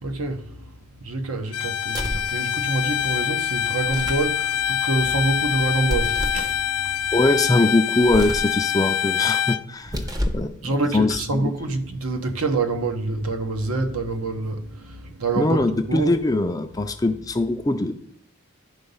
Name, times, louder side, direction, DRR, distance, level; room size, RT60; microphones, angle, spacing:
voice 1, 0.0-6.9 10.6-16.1, right 2 dB, 70° right, 1.0 m, -26 dB
Bowed string instrument, 1.5-9.6, left 9 dB, 85° left, 0.4 m, -25 dB
sound 1, 1.9-2.3 3.8-4.3 5.9-6.5 8.0-8.5 9.8-10.5, equal, 15° right, 0.7 m, -28 dB
voice 2, 7.1-11.5 15.4-17.9, left 2 dB, 15° left, 0.4 m, -22 dB
10.5 x 4.0 x 5.5 m
head